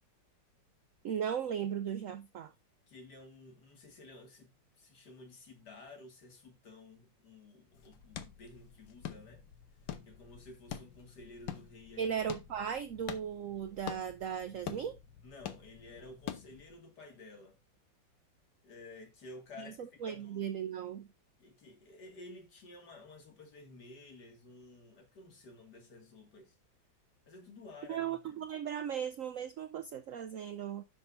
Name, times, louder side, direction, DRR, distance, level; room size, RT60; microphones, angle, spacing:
voice 1, 1.0-2.5 12.0-15.0 19.6-21.1 27.9-30.8, right 8 dB, 85° right, 0.7 m, -37 dB
voice 2, 2.9-9.5 10.1-12.2 15.2-17.6 18.6-20.5 21.4-26.5 27.3-28.5, left 2 dB, 55° left, 2.6 m, -53 dB
sound 1, 7.7-16.7, left 9 dB, 75° left, 1.6 m, -46 dB
11.0 x 6.3 x 2.6 m
omnidirectional pair, 2.1 m